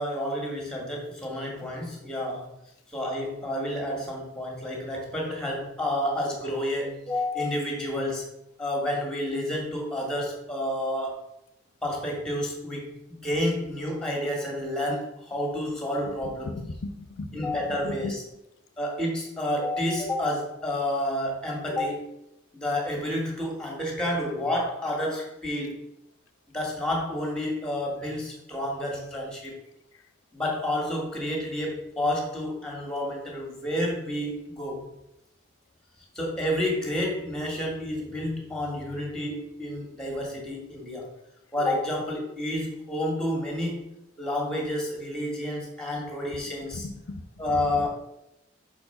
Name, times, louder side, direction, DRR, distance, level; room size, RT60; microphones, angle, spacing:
voice 1, 0.0-2.5 2.9-8.3 8.6-11.2 11.8-16.5 17.3-18.2 18.8-22.1 22.5-25.8 26.5-29.5 30.3-34.9 36.1-41.1 41.5-43.9 44.2-46.9 47.4-47.9, left 1 dB, 5° left, -1 dB, 1.7 m, -30 dB
voice 2, 16.4-18.1 46.7-47.2 47.8-47.9, left 2 dB, 85° left, 7 dB, 0.6 m, -37 dB
5.7 x 4.5 x 5.7 m, 0.85 s
head